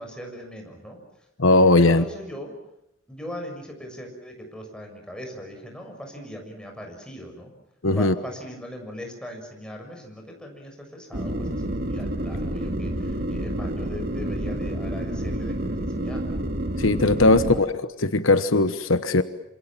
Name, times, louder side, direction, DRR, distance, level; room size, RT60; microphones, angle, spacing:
voice 1, 0.0-1.3 1.8-2.5 3.1-7.5 7.9-16.5 17.4-17.7, equal, 5° left, 2 dB, 6.8 m, -40 dB
voice 2, 1.4-2.0 7.8-8.1 16.8-19.2, left 2 dB, 80° left, 11 dB, 1.2 m, -19 dB
sound 1, 11.1-17.6, right 1 dB, 50° right, 2.3 m, -29 dB
27.0 x 26.5 x 7.5 m, 0.81 s
head